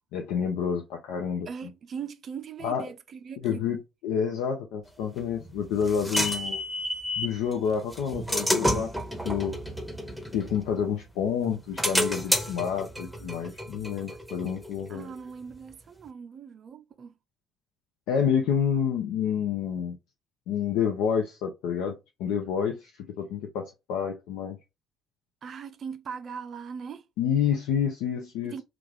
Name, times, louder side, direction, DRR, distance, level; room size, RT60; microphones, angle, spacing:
voice 1, 0.1-1.5 2.6-2.8 3.4-6.6 7.2-8.9 9.2-9.6 10.3-15.1 18.1-20.0 20.5-24.6 27.2-28.6, left 7 dB, 65° left, 0.4 m, -28 dB
voice 2, 1.5-3.8 14.9-17.1 25.4-27.0 28.4-28.6, right 6 dB, 45° right, 0.4 m, -40 dB
sound 1, 5.2-7.4 7.9-11.0 11.4-14.9, equal, ahead, 0.8 m, -30 dB
2.4 x 2.3 x 3.3 m
figure-of-eight pair, 50°, 0 cm